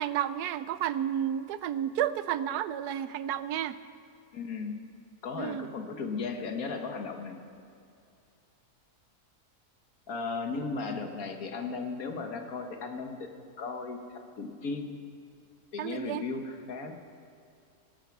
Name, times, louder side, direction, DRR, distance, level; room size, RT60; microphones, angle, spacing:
voice 1, 0.0-3.8 5.4-5.7 15.8-16.2, right 10 dB, 90° right, 14 dB, 1.1 m, -31 dB
voice 2, 4.3-4.8 5.2-7.4 10.1-13.3 13.6-14.0 14.4-14.9 15.7-16.9, left 4 dB, 65° left, 5 dB, 1.7 m, -35 dB
21.0 x 9.2 x 6.0 m, 2.4 s
omnidirectional pair, 1.6 m